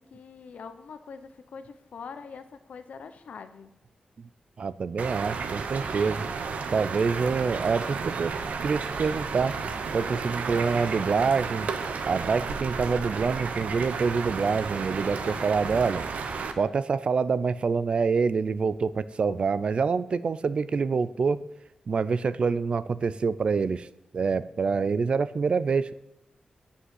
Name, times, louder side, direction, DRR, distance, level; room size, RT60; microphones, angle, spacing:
voice 1, 0.1-3.7 15.2-15.5, left 5 dB, 75° left, 9 dB, 0.8 m, -43 dB
voice 2, 4.6-6.3 6.7-8.4 8.6-9.5 9.9-11.7 12.0-16.1 16.6-21.4 21.9-23.9 24.1-25.9, right 5 dB, 50° right, 16 dB, 0.4 m, -26 dB
sound 1, 5.0-16.5, right 5 dB, 80° right, 1.0 m, -32 dB
10.5 x 5.6 x 8.1 m, 0.85 s
wide cardioid pair, 145°, 2 cm